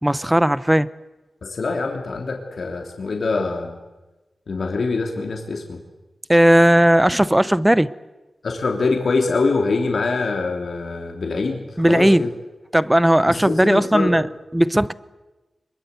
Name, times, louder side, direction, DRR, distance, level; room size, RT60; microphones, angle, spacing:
voice 1, 0.0-0.9 6.3-7.9 11.8-12.2 12.7-14.3 14.5-14.9, right 1 dB, 10° right, 0.8 m, -16 dB
voice 2, 1.4-3.7 4.5-5.8 8.4-12.3 13.3-14.2, left 3 dB, 70° left, 3.0 m, -24 dB
25.5 x 22.5 x 8.3 m
wide cardioid pair, 80°, 0 cm